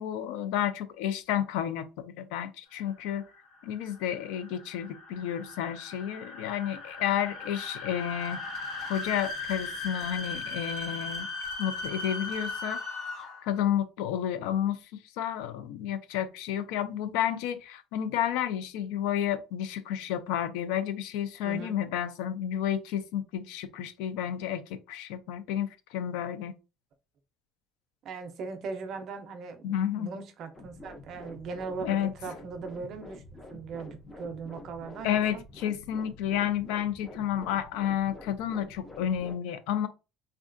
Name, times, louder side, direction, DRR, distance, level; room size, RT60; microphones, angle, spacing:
voice 1, 0.0-3.2 3.6-8.4 8.9-11.3 11.6-12.8 13.4-26.6 29.6-30.1 31.8-32.1 35.0-39.9, left 10 dB, 85° left, 0.4 m, -31 dB
sound 1, 2.9-13.5, left 3 dB, 55° left, 1.2 m, -38 dB
voice 2, 28.0-33.2 33.5-35.4, right 4 dB, 40° right, 0.5 m, -39 dB
sound 2, 30.5-39.4, left 2 dB, 15° left, 0.5 m, -48 dB
3.5 x 2.3 x 2.5 m
cardioid pair, 180°, 0 cm